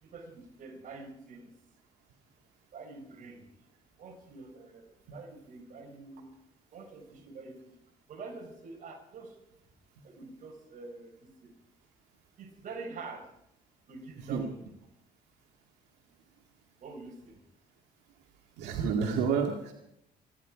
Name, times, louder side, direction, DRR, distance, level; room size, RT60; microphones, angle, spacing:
voice 1, 0.0-1.5 2.7-3.5 4.0-6.3 6.7-7.6 8.1-9.4 10.0-11.5 12.4-13.3 13.9-14.7 16.8-17.4, right 3 dB, 50° right, 3 dB, 4.3 m, -46 dB
voice 2, 18.6-19.7, right 6 dB, 90° right, 1 dB, 2.0 m, -29 dB
27.0 x 10.5 x 4.9 m, 0.80 s
cardioid pair, 110°, 17 cm